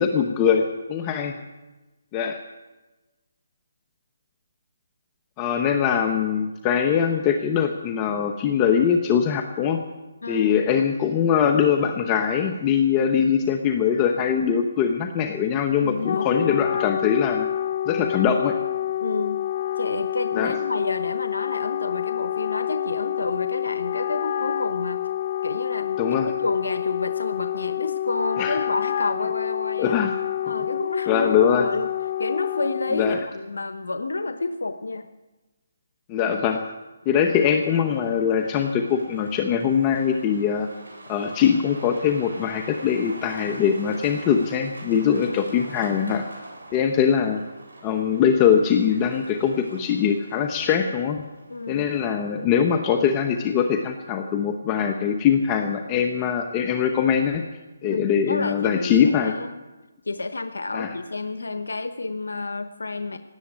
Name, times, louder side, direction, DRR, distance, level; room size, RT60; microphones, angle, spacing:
voice 1, 0.0-1.3 2.1-2.4 5.4-9.8 10.3-17.5 17.9-18.5 20.3-20.6 26.0-26.3 28.4-28.6 29.8-30.1 31.1-31.7 32.9-33.2 36.1-36.7 37.0-40.7 41.1-46.3 46.7-47.4 47.8-51.2 51.7-57.4 57.8-59.4 60.7-60.9, left 7 dB, 20° left, 5 dB, 1.0 m, -22 dB
voice 2, 10.2-10.6 15.7-16.7 19.0-19.4 19.8-25.0 25.4-26.0 26.4-30.0 30.5-31.9 32.2-35.1 45.1-45.6 51.5-51.9 57.8-59.6 60.0-63.2, left 3 dB, 90° left, 9 dB, 0.9 m, -30 dB
Wind instrument woodwind instrument, 15.8-33.3, left 11 dB, 40° left, 0.4 m, -28 dB
Truck, 37.0-52.9, right 1 dB, 90° right, 7.9 m, -44 dB
17.0 x 8.7 x 9.6 m, 1.1 s
hypercardioid pair, 155°, 0 cm